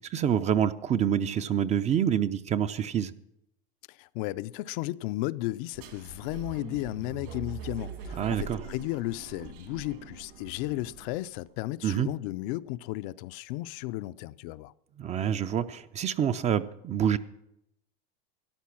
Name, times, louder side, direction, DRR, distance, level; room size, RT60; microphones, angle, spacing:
voice 1, 0.1-3.1 8.2-8.6 11.8-12.1 15.0-17.2, right 9 dB, 25° right, 0.5 m, -27 dB
voice 2, 3.9-14.7, left 17 dB, 60° left, 0.5 m, -34 dB
sound 1, 5.7-11.3, right 6 dB, 70° right, 3.2 m, -43 dB
13.5 x 11.5 x 5.9 m
supercardioid pair, 135°, 29 cm